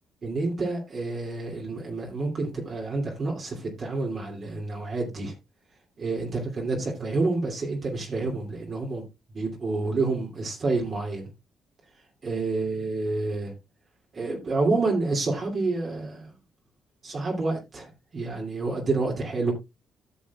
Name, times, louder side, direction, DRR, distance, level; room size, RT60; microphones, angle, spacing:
voice 1, 0.2-5.3 6.0-9.0 9.3-11.3 12.2-13.5 14.1-16.3 17.0-19.5, right 3 dB, 45° right, 2.6 m, -28 dB
13.5 x 6.4 x 2.3 m
cardioid pair, 90°, 0 cm